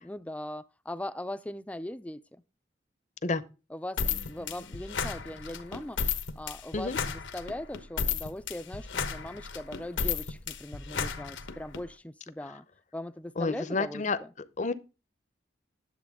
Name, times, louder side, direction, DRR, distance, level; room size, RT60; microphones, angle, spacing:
voice 1, 0.0-2.2 3.7-6.0 6.4-12.6 12.9-14.3, left 1 dB, 5° left, 0.4 m, -40 dB
sound 1, 4.0-11.8, left 6 dB, 85° left, 1.0 m, -33 dB
voice 2, 13.4-14.2 14.6-14.7, left 3 dB, 40° left, 0.7 m, -29 dB
10.5 x 7.5 x 3.6 m
head